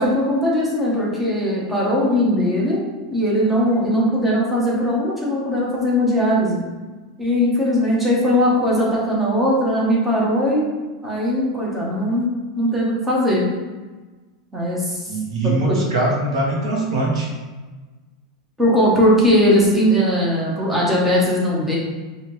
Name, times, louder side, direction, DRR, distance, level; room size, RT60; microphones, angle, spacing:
voice 1, 0.0-2.8 3.1-6.6 7.2-10.7 11.0-12.3 12.6-13.4 14.5-15.2 15.7-15.8 18.6-21.8, equal, 5° right, -6 dB, 0.9 m, -19 dB
voice 2, 15.1-17.3, right 2 dB, 80° right, -2 dB, 1.3 m, -22 dB
4.9 x 2.8 x 3.0 m, 1.3 s
supercardioid pair, 155°, 3 cm